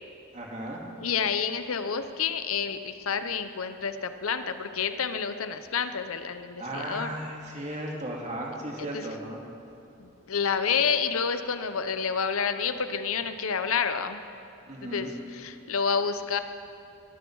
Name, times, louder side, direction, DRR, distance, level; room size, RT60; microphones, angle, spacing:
voice 1, 0.3-0.8 6.6-9.4 14.7-15.1, right 1 dB, 35° right, -1 dB, 2.4 m, -35 dB
voice 2, 1.0-7.1 8.8-9.1 10.0-14.2 14.8-16.4, left 6 dB, 80° left, 10 dB, 0.7 m, -29 dB
22.0 x 12.5 x 4.7 m, 2.8 s
head